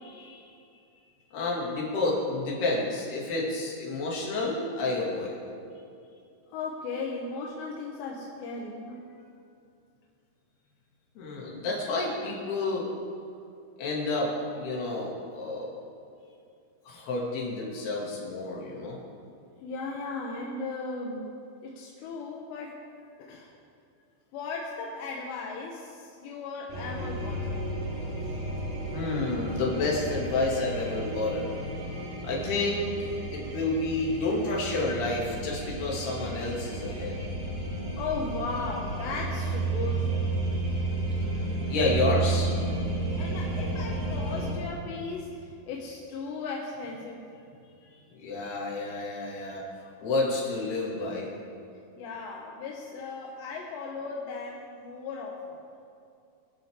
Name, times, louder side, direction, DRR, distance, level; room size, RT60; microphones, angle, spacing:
voice 1, 0.0-0.5 1.3-5.4 11.2-12.9 13.8-15.7 16.9-19.0 28.9-31.5 32.2-32.9 33.3-37.2 41.7-42.9 48.1-49.6 50.0-51.5, left 2 dB, 70° left, -4 dB, 4.5 m, -30 dB
voice 2, 6.5-9.0 19.6-21.3 21.6-22.8 23.2-23.5 24.3-27.5 38.0-40.1 43.2-47.2 52.0-55.6, left 4 dB, 85° left, -1 dB, 3.3 m, -36 dB
sound 1, 26.7-44.5, right 2 dB, 55° right, 4.1 m, -32 dB
22.5 x 11.5 x 3.7 m, 2.5 s
omnidirectional pair, 4.8 m